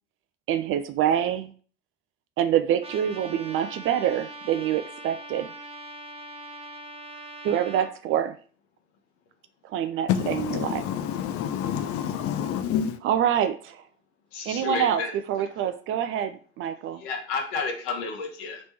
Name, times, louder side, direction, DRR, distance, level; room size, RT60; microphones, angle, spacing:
voice 1, 0.5-1.5 2.4-5.5 7.4-8.3 9.6-10.8 13.0-13.8 14.5-15.0 15.3-17.0, right 10 dB, 35° right, 0.4 m, -26 dB
Trumpet, 2.8-7.9, right 1 dB, 15° right, 0.8 m, -41 dB
voice 2, 10.1-13.0, left 9 dB, 40° left, 0.6 m, -28 dB
voice 3, 14.3-15.2 17.0-18.6, left 4 dB, 60° left, 1.2 m, -31 dB
3.3 x 2.9 x 4.6 m
figure-of-eight pair, 70°, 36 cm